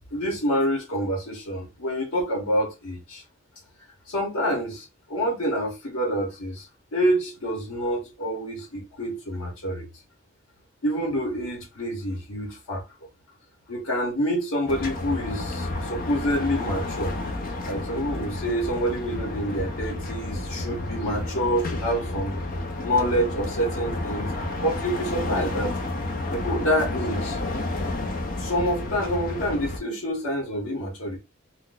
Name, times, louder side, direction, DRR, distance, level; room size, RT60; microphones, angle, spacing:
voice 1, 0.1-3.2 4.1-6.7 6.9-9.9 10.8-12.8 13.7-17.1 17.6-22.4 22.8-25.7 26.3-27.4 28.4-31.2, equal, 85° left, 1.0 m, -27 dB
sound 1, 14.7-29.8, left 2 dB, 45° left, 0.6 m, -31 dB
2.4 x 2.2 x 3.8 m
head